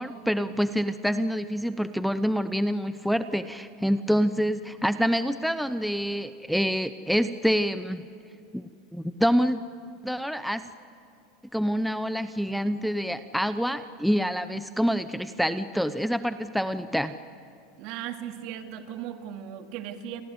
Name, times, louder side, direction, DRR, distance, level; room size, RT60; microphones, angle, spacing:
voice 1, 0.0-8.0 8.5-9.6 10.0-10.6 11.5-17.1, equal, ahead, 11 dB, 0.7 m, -26 dB
voice 2, 17.8-20.2, right 10 dB, 60° right, 6 dB, 2.3 m, -37 dB
29.0 x 23.0 x 8.0 m, 2.4 s
supercardioid pair, 115°, 0 cm